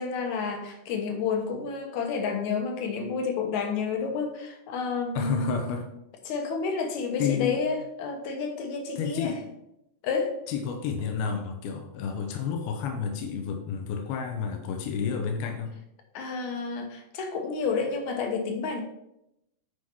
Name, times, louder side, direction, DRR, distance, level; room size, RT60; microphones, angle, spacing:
voice 1, 0.0-5.6 6.3-9.4 10.0-10.4 16.1-18.8, left 5 dB, 70° left, 4 dB, 2.0 m, -30 dB
voice 2, 5.2-5.9 7.2-7.6 9.0-9.4 10.5-15.8, left 6 dB, 90° left, 4 dB, 2.8 m, -30 dB
10.0 x 4.9 x 4.4 m, 0.83 s
omnidirectional pair, 4.3 m